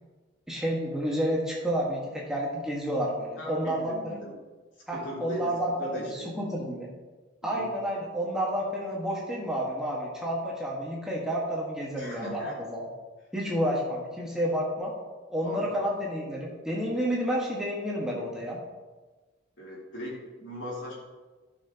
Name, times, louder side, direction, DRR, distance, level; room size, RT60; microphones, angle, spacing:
voice 1, 0.5-4.2 4.9-6.9 7.4-12.8 13.3-14.9 15.3-18.6, equal, 5° right, -4 dB, 1.5 m, -30 dB
voice 2, 3.4-4.3 4.9-6.3 7.4-7.7 12.0-12.6 15.4-15.7 19.6-20.9, equal, 75° left, -5 dB, 3.2 m, -39 dB
15.0 x 5.9 x 2.9 m, 1.3 s
head